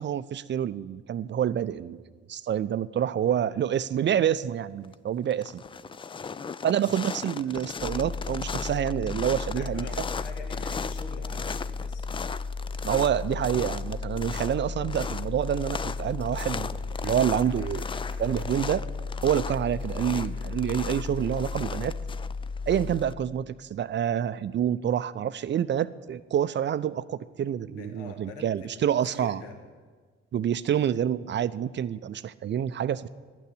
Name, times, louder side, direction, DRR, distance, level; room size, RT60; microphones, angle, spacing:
voice 1, 0.0-2.0 2.3-5.6 6.6-9.9 12.8-17.9 18.2-18.8 19.2-21.9 22.7-29.4 30.3-33.1, right 9 dB, 35° right, 15 dB, 0.6 m, -27 dB
voice 2, 3.2-4.1 9.5-12.1 27.7-29.6, left 4 dB, 70° left, 4 dB, 1.5 m, -45 dB
sound 1, 4.6-4.9 5.3-23.1, left 5 dB, 15° left, 0.4 m, -37 dB
sound 2, 7.8-23.5, left 4 dB, 40° left, 1.6 m, -35 dB
sound 3, 16.8-21.7, left 1 dB, 85° left, 2.0 m, -55 dB
11.0 x 9.1 x 9.9 m, 1.5 s
figure-of-eight pair, 45°, 31 cm